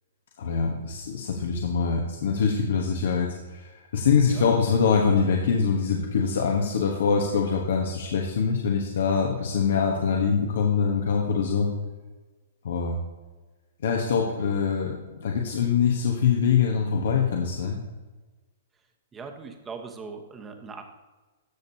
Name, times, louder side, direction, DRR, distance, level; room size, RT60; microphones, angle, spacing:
voice 1, 0.4-11.7 12.6-13.0 13.8-17.8, left 6 dB, 70° left, 1 dB, 1.2 m, -24 dB
voice 2, 19.1-20.8, right 5 dB, 15° right, 4 dB, 1.1 m, -40 dB
13.0 x 6.8 x 2.8 m, 1.3 s
hypercardioid pair, 135°, 0 cm